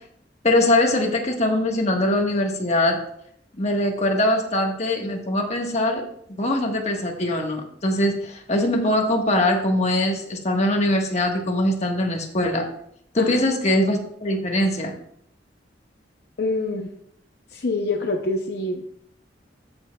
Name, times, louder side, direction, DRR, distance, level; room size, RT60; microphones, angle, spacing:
voice 1, 0.4-3.0 3.6-6.0 6.4-12.7 13.1-14.9, left 1 dB, 40° left, 1 dB, 1.4 m, -22 dB
voice 2, 16.4-16.9 17.5-18.8, left 2 dB, 60° left, 2 dB, 0.7 m, -25 dB
13.5 x 7.1 x 2.3 m, 0.69 s
head